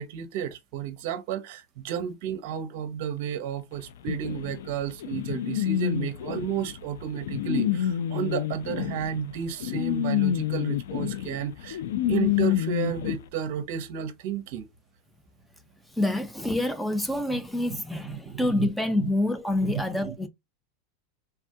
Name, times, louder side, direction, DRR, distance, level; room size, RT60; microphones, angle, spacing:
voice 1, 0.0-11.8 12.1-14.7 17.7-17.8 18.0-18.7 19.0-19.1 19.6-20.3, right 8 dB, 60° right, 0.6 m, -32 dB
sound 1, 4.1-13.2, left 11 dB, 85° left, 0.3 m, -28 dB
voice 2, 15.9-20.3, left 1 dB, 5° left, 0.4 m, -27 dB
3.4 x 2.2 x 2.6 m
supercardioid pair, 140°, 0 cm